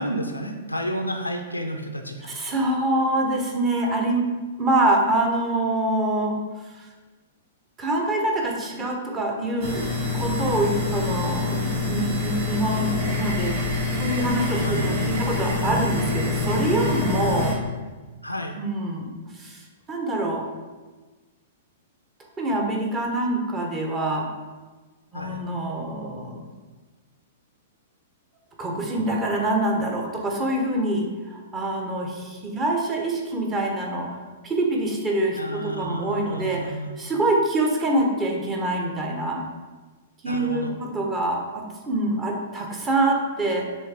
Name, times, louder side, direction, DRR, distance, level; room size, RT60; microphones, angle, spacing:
voice 1, 0.0-2.3 14.6-15.3 17.3-17.5 18.2-18.5 25.1-25.4 35.4-36.9 40.3-40.8, equal, 90° left, 4 dB, 0.6 m, -31 dB
voice 2, 2.2-4.3 4.6-6.4 6.7-6.9 7.8-9.9 10.1-17.6 18.6-19.6 19.9-20.5 22.4-24.3 25.1-26.4 28.6-39.4 40.2-43.7, right 1 dB, 20° right, 0 dB, 1.2 m, -25 dB
sound 1, 9.6-17.5, left 3 dB, 40° right, 1.8 m, -26 dB
6.9 x 3.4 x 4.9 m, 1.3 s
figure-of-eight pair, 105°, 0 cm